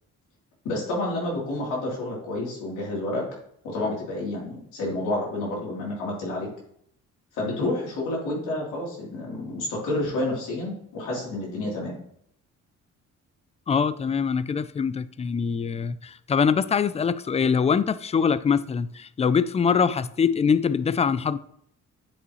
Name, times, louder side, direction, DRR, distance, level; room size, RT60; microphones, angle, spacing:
voice 1, 0.6-3.2 3.6-6.5 7.3-12.0, left 2 dB, 90° left, 3.4 m, -29 dB
voice 2, 13.7-21.4, left 6 dB, 20° left, 0.4 m, -23 dB
10.0 x 5.4 x 3.1 m
cardioid pair, 90°, 30 cm